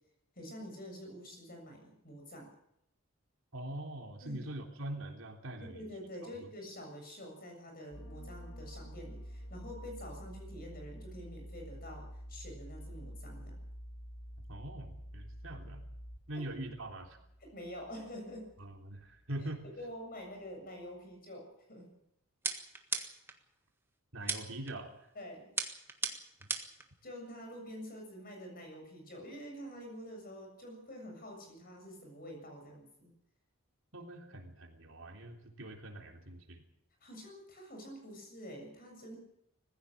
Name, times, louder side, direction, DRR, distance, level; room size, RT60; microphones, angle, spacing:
voice 1, 0.4-2.5 4.2-4.5 5.7-13.6 16.3-16.4 17.4-18.5 19.4-19.5 19.8-22.0 24.2-24.3 25.1-25.5 27.0-33.1 37.0-39.2, equal, 40° left, 3 dB, 7.4 m, -47 dB
voice 2, 3.5-5.9 14.5-15.8 16.3-17.2 18.6-19.6 24.1-24.9 33.9-36.6, right 1 dB, 65° right, 2 dB, 3.5 m, -43 dB
sound 1, 7.9-19.3 19.6-19.9, equal, 80° left, 3.8 m, -48 dB
sound 2, 22.4-23.4 24.3-24.7 25.6-26.8, right 3 dB, 10° right, 1.6 m, -36 dB
20.5 x 15.5 x 8.6 m, 0.79 s
head